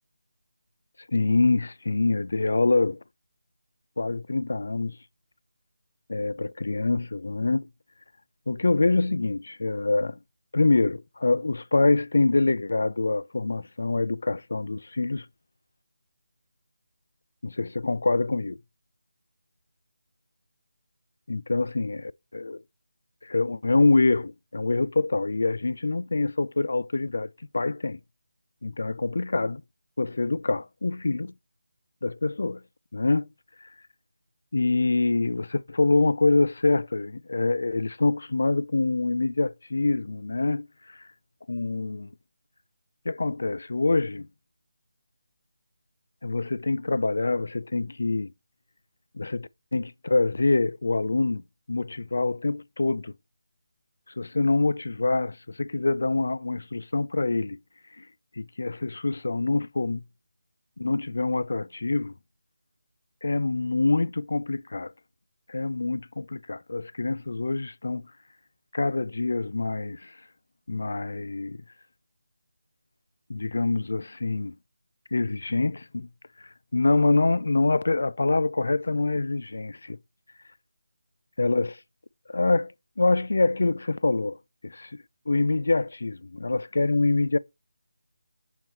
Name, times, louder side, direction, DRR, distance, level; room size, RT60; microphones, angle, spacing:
voice 1, 1.1-3.0 4.0-5.0 6.1-7.7 8.5-10.2 10.5-15.3 17.4-18.6 21.3-22.6 23.2-28.0 28.6-29.6 30.0-31.3 32.0-32.6 32.9-33.3 33.6-33.7 34.5-41.0 41.5-42.1 43.1-44.3 46.2-48.3 49.1-51.4 51.7-53.1 54.2-57.6 58.0-58.1 58.4-60.0 60.8-62.1 63.2-64.9 65.5-68.1 68.7-70.2 70.7-71.6 73.3-74.5 75.1-76.1 76.4-80.0 81.4-81.8 82.3-84.4 84.6-87.4, left 3 dB, 60° left, 0.3 m, -25 dB
7.1 x 3.0 x 4.4 m
figure-of-eight pair, 175°, 0 cm